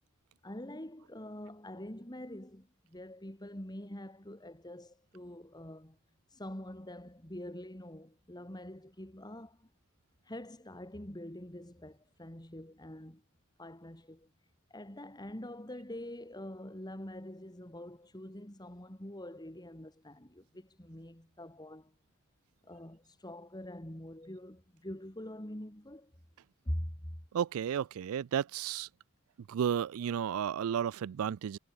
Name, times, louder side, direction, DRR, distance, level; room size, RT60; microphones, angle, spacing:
voice 1, 0.4-6.0 6.3-9.7 10.2-13.2 13.6-14.3 14.7-21.9 22.6-26.1 26.6-27.2, left 1 dB, 20° left, 3.2 m, -45 dB
voice 2, 27.3-28.9 29.5-31.6, right 8 dB, 75° right, 0.4 m, -33 dB
head